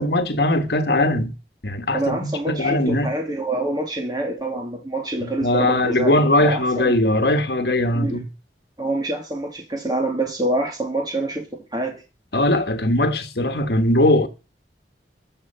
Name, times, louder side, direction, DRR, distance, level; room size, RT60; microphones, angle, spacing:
voice 1, 0.0-1.3 1.6-3.1 5.2-8.3 12.3-14.3, left 1 dB, 70° left, 1.4 m, -20 dB
voice 2, 1.9-6.9 7.9-8.2 8.8-12.0, right 1 dB, 25° right, 2.8 m, -26 dB
13.0 x 6.4 x 5.6 m
head